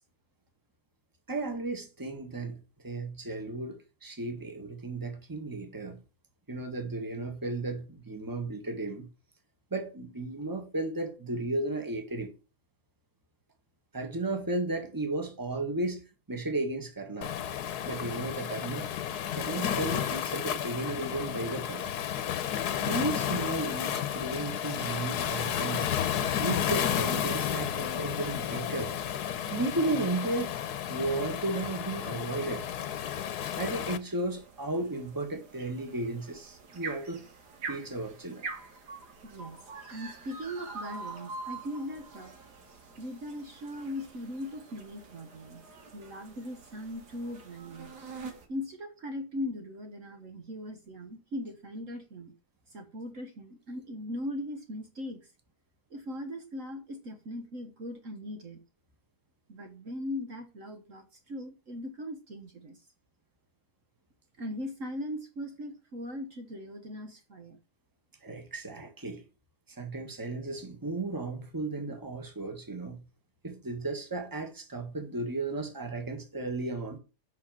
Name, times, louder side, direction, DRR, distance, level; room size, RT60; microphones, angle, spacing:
voice 1, 1.3-2.6 2.8-6.0 6.5-9.1 9.7-12.3 13.9-16.0 16.3-17.3 17.8-18.9 19.3-22.1 22.8-25.9 26.4-29.0 29.5-30.6 30.9-32.7 33.6-37.2 37.7-38.5 68.2-69.2 69.7-73.0 73.4-77.0, right 2 dB, 15° right, 1.7 m, -34 dB
Waves surf, 17.2-34.0, left 9 dB, 80° left, 1.4 m, -32 dB
sound 1, 31.5-48.5, right 4 dB, 90° right, 2.5 m, -46 dB
voice 2, 39.2-39.6 39.9-42.4 43.0-45.6 45.9-47.9 48.5-52.3 52.7-55.3 55.9-58.6 59.5-62.8 64.4-67.6, left 1 dB, 55° right, 1.7 m, -39 dB
8.3 x 5.9 x 7.5 m
omnidirectional pair, 1.7 m